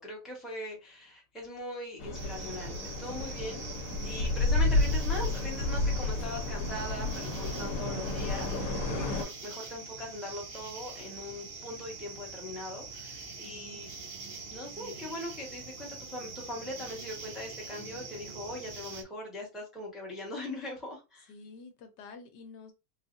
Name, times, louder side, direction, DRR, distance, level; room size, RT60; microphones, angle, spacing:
voice 1, 0.0-3.6 4.0-13.9 14.5-21.3, left 1 dB, ahead, 0.9 m, -41 dB
sound 1, 2.0-9.2, left 2 dB, 60° left, 1.2 m, -31 dB
sound 2, 2.1-19.0, right 4 dB, 70° right, 0.5 m, -44 dB
voice 2, 13.4-13.8 21.3-22.7, left 4 dB, 75° left, 1.2 m, -49 dB
3.9 x 2.4 x 2.6 m
omnidirectional pair, 1.9 m